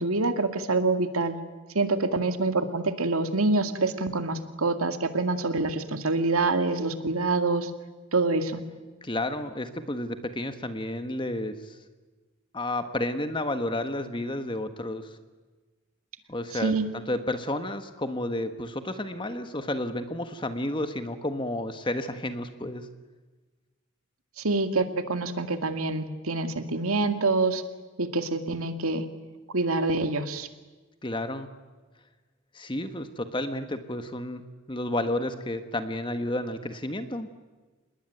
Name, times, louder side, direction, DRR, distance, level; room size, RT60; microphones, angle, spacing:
voice 1, 0.0-1.4 1.7-7.7 8.1-8.6 16.6-16.9 24.4-27.6 28.0-29.1 29.5-30.5, right 3 dB, 90° right, 8 dB, 2.2 m, -26 dB
voice 2, 9.0-11.8 12.5-15.1 16.3-22.9 31.0-31.5 32.5-34.4 34.7-37.3, left 1 dB, 25° left, 9 dB, 1.4 m, -31 dB
27.0 x 21.0 x 9.3 m, 1.3 s
head